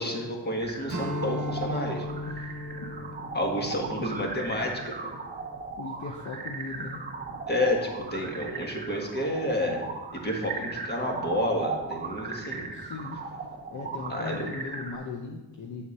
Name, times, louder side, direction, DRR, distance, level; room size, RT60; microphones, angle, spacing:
voice 1, 0.0-2.1 3.3-5.1 7.5-9.8 10.1-12.7 14.1-14.5, left 1 dB, 25° left, 1 dB, 1.5 m, -30 dB
sound 1, 0.6-15.0, right 4 dB, 25° right, 0.8 m, -37 dB
Strum, 0.9-5.6, left 1 dB, 50° right, 1.1 m, -37 dB
voice 2, 5.8-7.0 12.7-13.2 13.7-15.9, left 4 dB, 45° left, 1 dB, 0.8 m, -38 dB
8.4 x 4.3 x 5.4 m, 1.1 s
cardioid pair, 110°, 39 cm